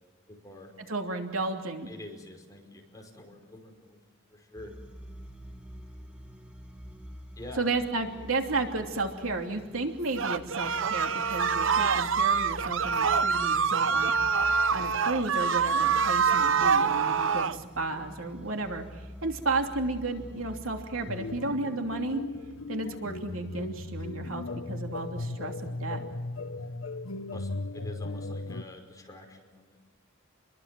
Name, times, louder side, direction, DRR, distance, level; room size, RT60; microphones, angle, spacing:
voice 1, 0.3-0.7 1.9-4.7 7.4-7.7 27.3-29.8, left 1 dB, 20° left, 2 dB, 5.2 m, -46 dB
voice 2, 0.9-1.9 7.6-14.1 14.7-22.2 22.7-26.1, right 3 dB, 85° right, 4 dB, 2.9 m, -33 dB
sound 1, 4.6-21.4, equal, 5° right, 1.5 m, -46 dB
sound 2, 10.2-17.6, right 6 dB, 65° right, 0.9 m, -25 dB
sound 3, 21.1-28.6, left 2 dB, 80° left, 1.1 m, -37 dB
29.0 x 22.0 x 7.7 m, 1.2 s
head